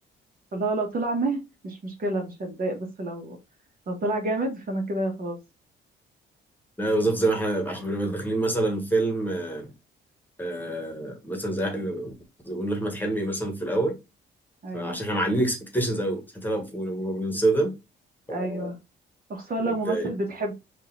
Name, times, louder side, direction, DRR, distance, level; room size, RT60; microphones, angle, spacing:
voice 1, 0.5-3.4 3.9-5.4 14.6-15.0 18.3-18.8 19.3-20.5, right 2 dB, 45° right, 1.3 m, -29 dB
voice 2, 6.8-9.7 10.4-12.1 12.4-14.0 14.7-17.8 18.3-18.7 19.6-20.1, right 2 dB, 10° left, 1.3 m, -27 dB
4.0 x 2.6 x 3.8 m
cardioid pair, 90°, 20 cm